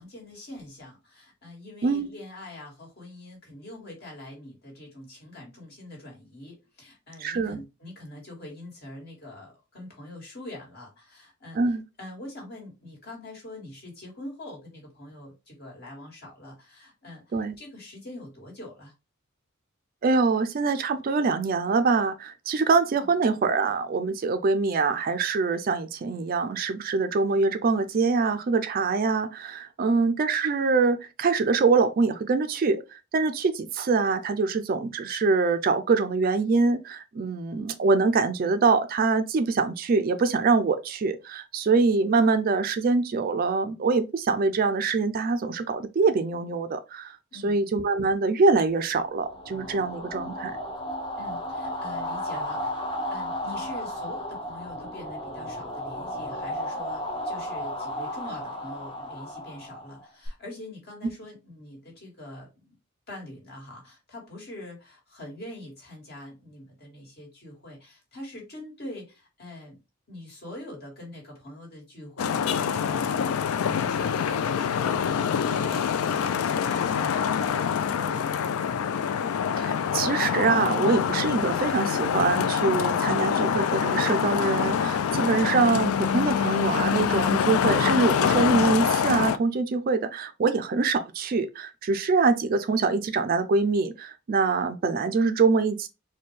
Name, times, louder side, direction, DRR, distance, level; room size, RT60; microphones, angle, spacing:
voice 1, 0.0-18.9 22.9-23.1 47.3-47.6 51.2-62.8 63.1-69.8 70.1-79.0, left 1 dB, 50° left, 1.7 m, -43 dB
voice 2, 7.2-7.6 11.6-11.8 17.3-17.5 20.0-47.2 47.4-50.6 79.6-95.9, right 4 dB, 40° right, 0.3 m, -24 dB
sound 1, 49.1-60.3, equal, 25° left, 0.7 m, -34 dB
Traffic noise roadway noise, 72.2-89.4, left 7 dB, 80° left, 0.3 m, -25 dB
4.2 x 2.2 x 3.1 m
head